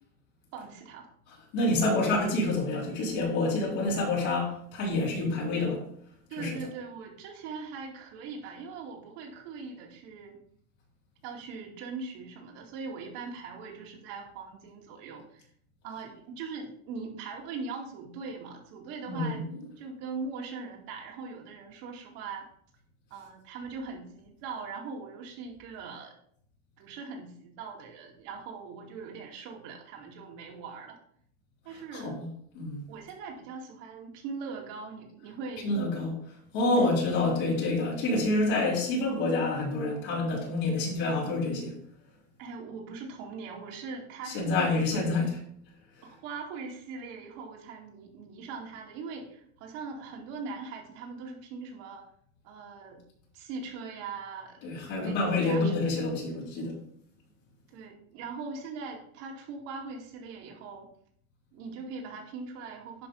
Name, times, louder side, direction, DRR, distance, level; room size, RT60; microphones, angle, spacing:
voice 1, 0.5-1.1 6.3-10.4 11.2-15.4 15.8-22.5 23.1-26.1 26.8-31.0 31.6-32.1 32.9-35.8 42.4-45.0 46.0-52.1 52.4-53.0 53.3-54.6 55.0-55.9 57.7-60.9 61.5-63.1, right 4 dB, 80° right, 0 dB, 2.5 m, -41 dB
voice 2, 1.5-5.8 6.4-6.6 19.1-19.4 31.9-32.3 32.5-32.8 35.6-36.1 36.5-41.7 44.3-45.4 54.6-56.8, left 2 dB, 80° left, -4 dB, 3.7 m, -27 dB
10.5 x 3.7 x 5.2 m, 0.64 s
cardioid pair, 130°, 31 cm